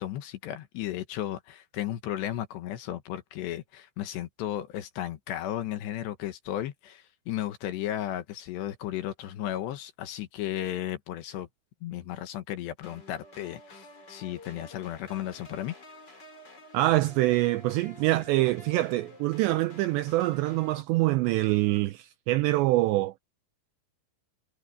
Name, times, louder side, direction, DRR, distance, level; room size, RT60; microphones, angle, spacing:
voice 1, 0.0-11.5 11.8-15.7, left 12 dB, 70° left, 3.1 m, -34 dB
sound 1, 12.8-20.8, left 2 dB, 25° left, 3.9 m, -50 dB
voice 2, 16.7-23.1, right 18 dB, 85° right, 2.5 m, -25 dB
omnidirectional pair, 5.6 m